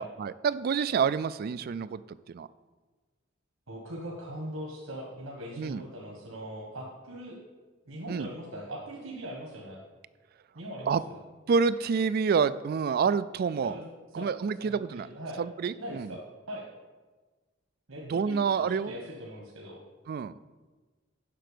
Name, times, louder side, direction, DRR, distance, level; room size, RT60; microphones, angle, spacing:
voice 1, 0.0-2.0 2.3-2.5 5.6-5.8 8.1-8.3 10.9-11.0 11.5-13.8 14.1-15.1 15.4-16.2 18.0-18.9 20.1-20.3, right 6 dB, 50° right, 16 dB, 0.3 m, -28 dB
voice 2, 3.7-7.4 7.9-9.8 10.5-11.2 13.6-13.9 14.2-15.4 15.8-16.6 17.9-19.8, right 1 dB, 80° right, -1 dB, 1.4 m, -41 dB
7.7 x 6.0 x 6.7 m, 1.3 s
head